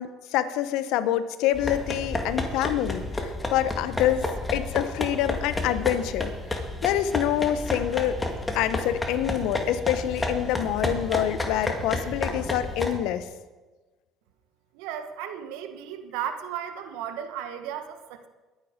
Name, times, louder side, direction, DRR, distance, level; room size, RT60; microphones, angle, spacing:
voice 1, 0.0-4.3 4.5-6.3 6.8-8.2 8.5-13.3, left 11 dB, 75° left, 13 dB, 0.9 m, -26 dB
sound 1, 1.5-13.0, left 2 dB, 15° left, 2.3 m, -31 dB
voice 2, 14.7-18.3, right 9 dB, 80° right, 8 dB, 1.4 m, -35 dB
21.5 x 9.2 x 5.1 m, 1.2 s
supercardioid pair, 85°, 0 cm